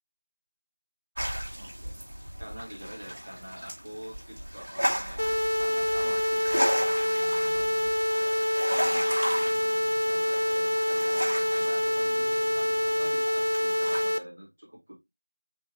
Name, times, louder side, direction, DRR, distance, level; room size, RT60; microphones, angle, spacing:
sound 1, 1.2-14.0, equal, 35° right, 1.7 m, -35 dB
voice 1, 1.5-1.9 2.4-7.9 8.7-14.9, equal, 10° right, 1.9 m, -45 dB
sound 2, 5.2-14.2, left 1 dB, 60° left, 0.5 m, -26 dB
4.4 x 3.1 x 3.0 m
figure-of-eight pair, 175°, 0 cm